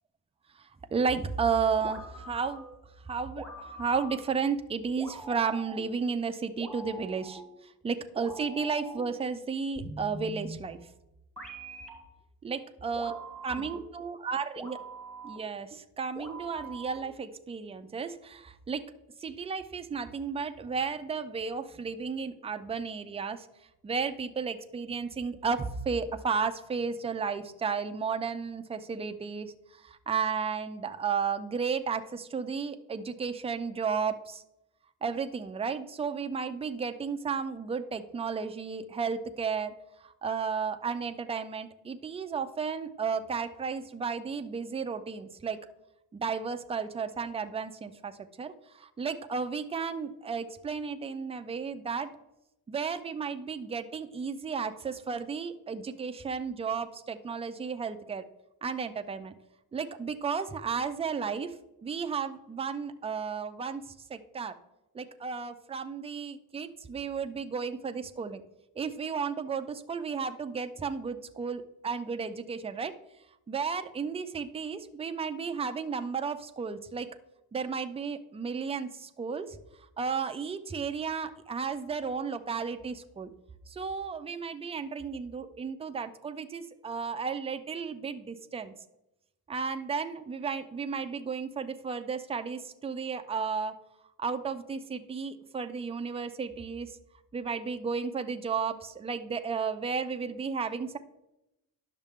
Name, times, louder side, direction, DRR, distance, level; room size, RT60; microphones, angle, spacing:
voice 1, 0.9-2.6 3.1-7.4 7.8-10.8 12.4-14.8 15.2-18.8 19.2-23.5 23.8-29.5 29.8-34.4 35.0-39.7 40.0-45.6 46.1-48.1 48.4-52.1 52.7-58.2 58.6-59.3 59.7-61.5 61.8-63.8 64.1-64.5 64.9-68.4 68.8-72.9 73.5-77.1 77.5-79.6 80.0-83.3 83.7-88.7 89.5-93.7 94.2-97.0 97.3-101.0, right 5 dB, 15° right, 8 dB, 0.3 m, -33 dB
sound 1, 1.8-2.8 3.4-4.4 5.0-6.0 6.6-7.6 8.2-9.2 9.8-10.8 11.4-12.1 13.0-14.0 14.6-15.6 16.2-17.2, right 2 dB, ahead, 1.2 m, -44 dB
10.5 x 6.5 x 3.5 m, 0.91 s
wide cardioid pair, 165°, 37 cm